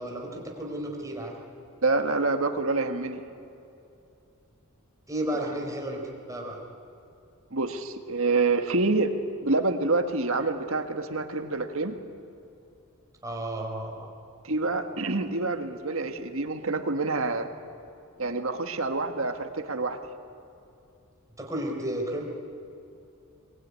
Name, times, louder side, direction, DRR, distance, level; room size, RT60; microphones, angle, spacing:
voice 1, 0.0-1.4 5.1-6.6 13.2-14.1 21.4-22.2, right 1 dB, 15° right, 0 dB, 4.3 m, -33 dB
voice 2, 1.8-3.2 7.5-9.2 9.4-12.0 14.4-17.5 18.2-20.0, right 3 dB, 70° right, 6 dB, 1.7 m, -27 dB
23.0 x 22.0 x 9.7 m, 2.7 s
head